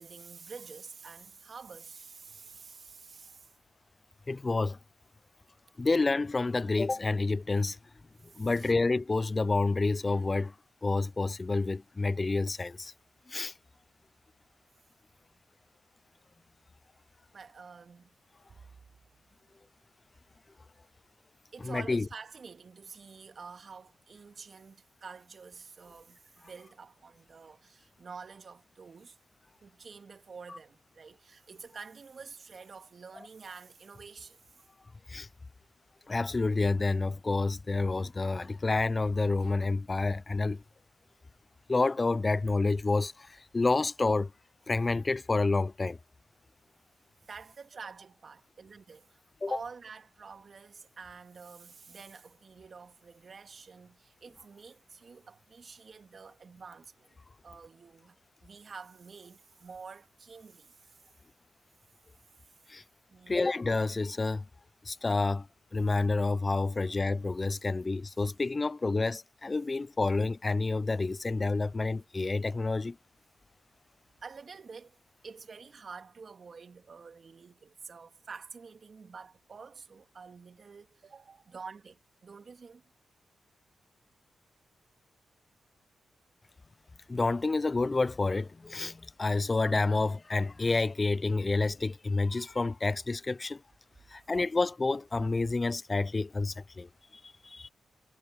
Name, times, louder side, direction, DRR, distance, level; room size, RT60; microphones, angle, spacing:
voice 1, 0.0-3.5 8.3-8.7 17.3-18.1 18.5-18.6 21.5-29.2 29.6-34.6 47.2-49.2 49.5-57.2 57.4-61.0 63.1-63.4 74.2-75.0 75.2-82.8 91.6-91.7, right 5 dB, 60° right, 2.3 m, -48 dB
voice 2, 4.3-4.8 5.8-7.8 8.4-10.5 10.8-12.9 13.3-13.5 21.6-22.1 35.1-35.3 36.1-40.6 41.7-44.3 44.7-46.0 49.4-49.6 62.7-62.8 63.3-64.4 64.8-65.5 65.7-73.0 87.1-93.6 94.1-96.9 97.2-97.7, left 3 dB, 35° left, 0.5 m, -29 dB
supercardioid pair, 50°, 0 cm